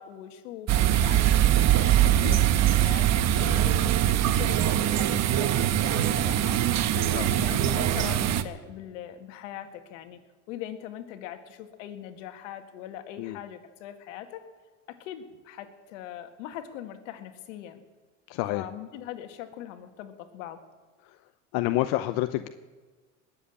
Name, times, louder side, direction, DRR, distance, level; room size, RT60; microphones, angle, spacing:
voice 1, 0.0-1.6 2.0-3.9 4.3-6.6 6.9-10.2 10.5-14.4 14.9-17.8 18.5-20.6, left 11 dB, 75° left, 7 dB, 1.9 m, -41 dB
sound 1, 0.7-8.4, right 11 dB, 45° right, 1.1 m, -22 dB
voice 2, 2.0-2.4 7.1-7.3 13.2-13.4 18.3-18.6 21.0-21.2 21.5-22.5, left 16 dB, 60° left, 11 dB, 0.8 m, -29 dB
20.5 x 7.8 x 8.7 m, 1.3 s
supercardioid pair, 100°, 37 cm